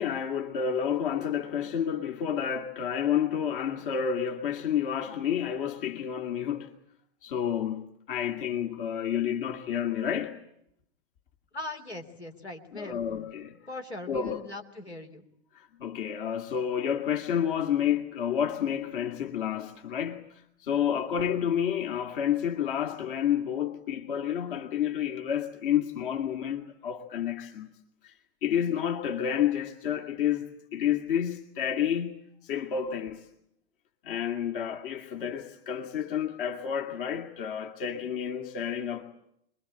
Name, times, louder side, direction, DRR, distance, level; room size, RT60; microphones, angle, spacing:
voice 1, 0.0-6.7 7.2-10.4 12.7-13.6 14.1-14.4 15.8-20.2 20.6-27.7 28.0-28.1 28.4-30.5 30.7-33.3 34.0-39.0, left 9 dB, 55° left, 2.4 m, -30 dB
voice 2, 11.5-13.3 13.7-15.2, left 2 dB, 80° left, 3.5 m, -40 dB
26.0 x 22.0 x 8.7 m
figure-of-eight pair, 95°, 32 cm